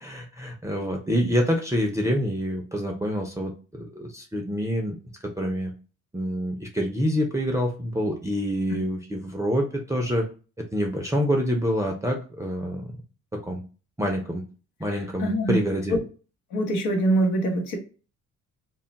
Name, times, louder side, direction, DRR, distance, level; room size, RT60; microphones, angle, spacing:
voice 1, 0.0-5.0 5.4-5.7 6.1-10.3 10.7-12.8 13.4-13.6 14.0-14.4 14.8-15.9, equal, 10° right, 1 dB, 0.4 m, -26 dB
voice 2, 15.2-15.6 15.9-16.0 16.5-17.8, right 1 dB, 90° left, 2 dB, 0.8 m, -23 dB
2.2 x 2.1 x 3.8 m, 0.36 s
cardioid pair, 90°, 30 cm